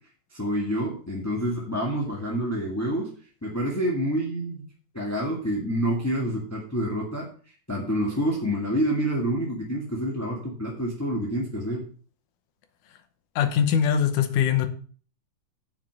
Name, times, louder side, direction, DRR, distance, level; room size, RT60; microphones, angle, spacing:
voice 1, 0.3-3.1 3.4-4.7 4.9-7.3 7.7-11.9, equal, 10° left, 1.1 m, -27 dB
voice 2, 13.4-14.7, left 8 dB, 80° left, 2.4 m, -22 dB
7.4 x 6.0 x 7.5 m
omnidirectional pair, 3.7 m